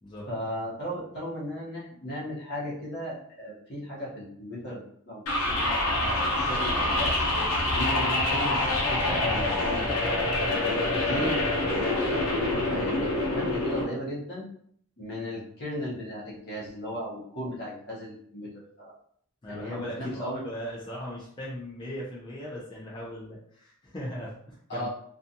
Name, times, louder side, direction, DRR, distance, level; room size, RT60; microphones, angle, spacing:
voice 1, 0.3-5.2 5.5-7.2 7.7-9.9 10.5-11.4 11.7-14.5 15.0-18.9 19.5-20.4 24.7-24.9, equal, 50° left, -5 dB, 1.1 m, -36 dB
sound 1, 5.3-13.8, left 2 dB, 90° left, 0.7 m, -26 dB
voice 2, 19.4-24.9, equal, 20° left, -7 dB, 0.5 m, -38 dB
2.5 x 2.4 x 2.7 m, 0.64 s
head